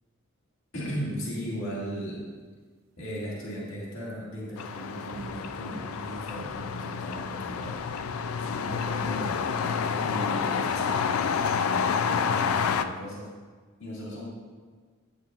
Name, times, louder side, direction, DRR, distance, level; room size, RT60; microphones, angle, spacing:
voice 1, 0.7-2.2 3.0-7.8 8.4-9.4 10.0-13.3 13.8-14.3, equal, 65° left, -5 dB, 1.8 m, -37 dB
sound 1, 4.6-12.8, left 6 dB, 85° left, 0.4 m, -29 dB
sound 2, 4.6-9.0, right 2 dB, 80° right, 0.6 m, -48 dB
10.0 x 8.7 x 2.4 m, 1.5 s
head